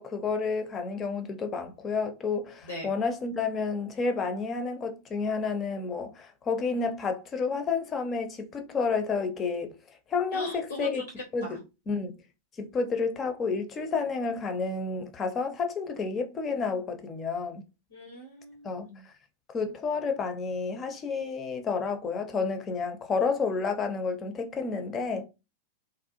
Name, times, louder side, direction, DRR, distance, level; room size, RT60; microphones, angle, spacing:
voice 1, 0.0-9.7 10.1-11.0 11.3-11.6 11.9-12.1 12.6-17.6 18.6-18.9 19.5-25.2, left 4 dB, 25° left, 0.6 m, -30 dB
voice 2, 10.3-11.0 11.4-11.6 17.9-19.0, equal, 65° left, 0.7 m, -40 dB
2.5 x 2.1 x 2.9 m
figure-of-eight pair, 90°, 0 cm